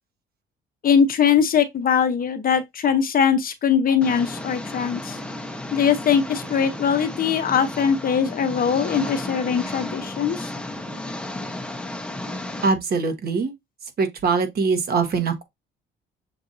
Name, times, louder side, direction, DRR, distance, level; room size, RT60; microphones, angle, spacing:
voice 1, 0.8-5.2 5.7-10.5, left 7 dB, 45° left, 0.8 m, -21 dB
Engine, 4.0-12.7, left 1 dB, 5° left, 0.7 m, -33 dB
voice 2, 12.6-13.5 13.8-15.4, right 4 dB, 50° right, 1.2 m, -23 dB
6.8 x 2.6 x 2.6 m
cardioid pair, 100°, 21 cm